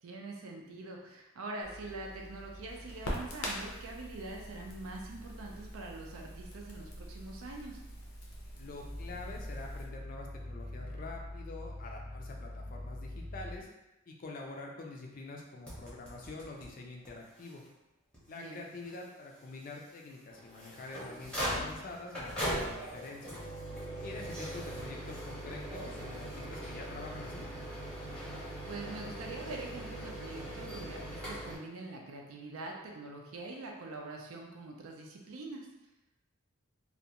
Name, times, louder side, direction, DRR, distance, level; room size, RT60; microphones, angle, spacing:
voice 1, 0.0-7.8 18.3-18.7 28.4-35.7, right 2 dB, 80° right, 0 dB, 0.5 m, -44 dB
Crackle, 1.6-9.8, equal, 90° left, 0.6 m, -44 dB
voice 2, 8.6-13.7 14.1-17.6 18.3-23.4 24.0-27.5, left 3 dB, 40° left, 0 dB, 0.3 m, -46 dB
Growling, 8.7-13.6, left 1 dB, 45° right, 0.6 m, -43 dB
sound 1, 15.7-16.7 17.1-17.2 17.4-17.5 18.1-18.2 20.3-31.6, right 1 dB, 5° left, 0.6 m, -40 dB
2.4 x 2.1 x 2.8 m, 0.97 s
head